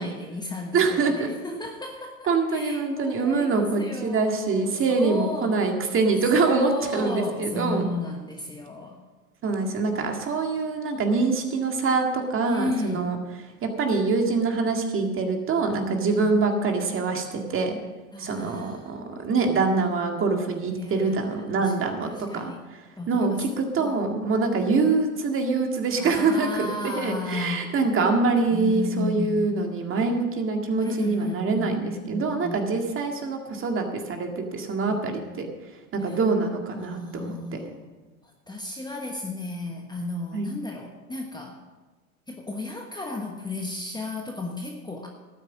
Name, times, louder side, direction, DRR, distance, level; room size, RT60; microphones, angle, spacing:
voice 1, 0.0-5.6 6.4-9.0 12.4-13.1 16.0-16.3 18.1-18.9 20.7-21.7 22.0-22.6 22.9-23.4 23.7-24.2 26.0-27.7 28.5-29.7 30.8-32.6 34.9-35.0 35.3-35.4 36.0-36.2 36.8-37.9 38.5-41.6 42.3-45.1, left 2 dB, 10° left, 1 dB, 1.2 m, -34 dB
voice 2, 0.7-1.3 2.3-7.9 9.4-13.2 13.6-17.8 18.2-35.5 35.9-37.6 40.3-40.5, right 4 dB, 30° right, 3 dB, 2.0 m, -25 dB
12.5 x 9.4 x 6.3 m, 1.2 s
hypercardioid pair, 105°, 44 cm